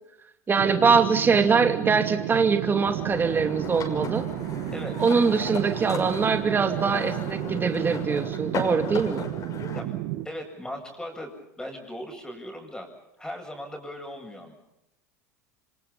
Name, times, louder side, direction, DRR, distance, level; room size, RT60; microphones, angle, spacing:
voice 1, 0.5-4.2 5.0-9.3, right 5 dB, 25° right, 7 dB, 2.6 m, -23 dB
sound 1, 0.6-10.3, right 15 dB, 65° right, 1.7 m, -32 dB
sound 2, 2.8-9.8, left 5 dB, 40° left, 6.0 m, -37 dB
voice 2, 4.7-5.1 9.7-10.0 10.2-12.9 13.2-14.5, left 1 dB, 5° left, 3 dB, 7.6 m, -38 dB
28.0 x 26.0 x 5.5 m, 0.85 s
hypercardioid pair, 90°, 9 cm